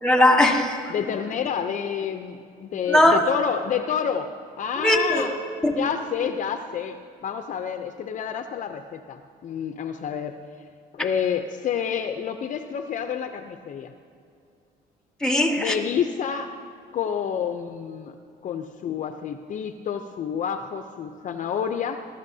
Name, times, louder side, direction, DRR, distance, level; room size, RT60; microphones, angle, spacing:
voice 1, 0.0-0.8 2.9-3.2 4.8-5.2 5.6-5.7 15.2-15.8, left 1 dB, 5° left, 2 dB, 1.5 m, -19 dB
voice 2, 0.9-4.3 4.6-5.3 5.7-10.4 10.9-13.9 15.6-16.6 16.9-18.2 18.4-22.1, left 8 dB, 50° left, 8 dB, 0.6 m, -29 dB
20.0 x 13.0 x 2.7 m, 2.3 s
cardioid pair, 110°, 17 cm